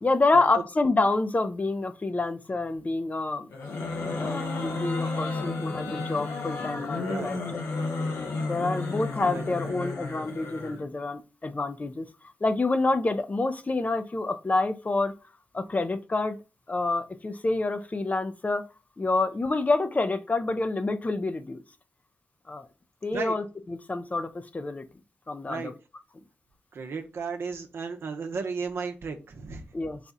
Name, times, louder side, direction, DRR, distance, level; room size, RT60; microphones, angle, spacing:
voice 1, 0.0-3.5 4.1-7.4 8.4-12.1 12.4-15.1 15.5-16.4 16.7-18.7 19.0-21.6 22.5-22.7 23.0-24.8 25.3-25.7 29.7-30.0, left 3 dB, 35° left, 10 dB, 0.5 m, -27 dB
sound 1, 3.5-10.8, left 3 dB, 80° left, 0.8 m, -32 dB
voice 2, 7.0-7.3 9.3-9.7 23.1-23.3 25.5-25.7 26.7-29.6, right 5 dB, 70° right, 5 dB, 0.7 m, -34 dB
4.1 x 2.3 x 4.0 m, 0.31 s
cardioid pair, 45°, 4 cm